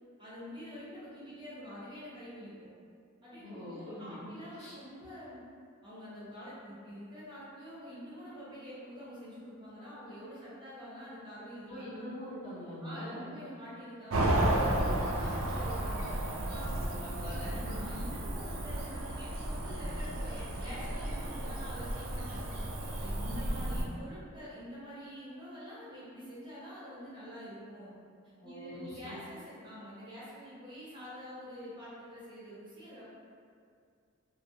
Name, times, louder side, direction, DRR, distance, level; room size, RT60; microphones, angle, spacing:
voice 1, 0.2-2.7 3.2-5.4 5.8-12.0 12.8-16.0 16.5-16.8 17.2-22.5 23.0-27.9 28.4-33.0, equal, 25° right, -11 dB, 0.8 m, -46 dB
voice 2, 3.4-4.1 4.5-4.7 11.7-13.3 14.4-15.1 16.6-17.8 28.4-29.2, left 1 dB, 30° left, -11 dB, 0.7 m, -44 dB
Cricket / Motor vehicle (road), 14.1-23.8, right 1 dB, 70° right, 0.4 m, -33 dB
2.4 x 2.1 x 2.7 m, 2.2 s
head